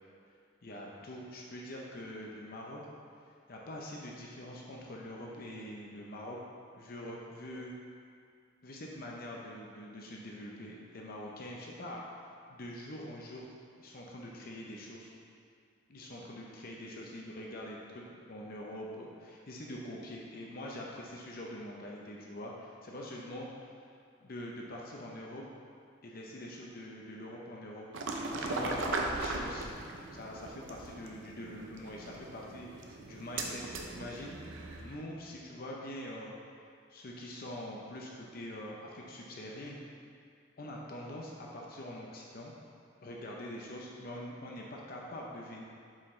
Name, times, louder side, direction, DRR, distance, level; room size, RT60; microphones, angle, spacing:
voice 1, 0.6-2.8 3.5-6.4 6.7-7.7 8.6-12.0 12.5-13.4 13.8-15.1 15.9-23.5 24.2-25.5 26.0-27.9 28.3-28.8 29.1-29.7 30.1-34.3 34.8-36.4 36.9-39.8 40.6-42.5 43.0-45.6, left 1 dB, 50° left, -2 dB, 0.6 m, -44 dB
sound 1, 27.9-35.0, right 2 dB, 80° right, 0.6 m, -38 dB
7.3 x 4.6 x 3.2 m, 2.2 s
head